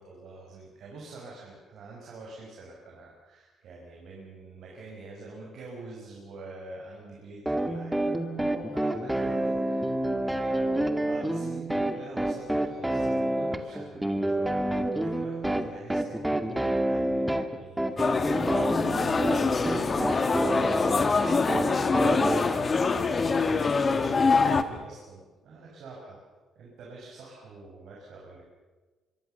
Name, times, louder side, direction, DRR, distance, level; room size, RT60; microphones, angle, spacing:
voice 1, 0.0-26.2 26.5-28.4, right 3 dB, 70° right, -2 dB, 6.5 m, -46 dB
sound 1, 7.5-22.4, right 1 dB, 5° right, 2.3 m, -28 dB
sound 2, 18.0-24.6, left 4 dB, 35° left, 1.9 m, -25 dB
24.5 x 24.0 x 7.1 m, 1.3 s
cardioid pair, 90°, 0 cm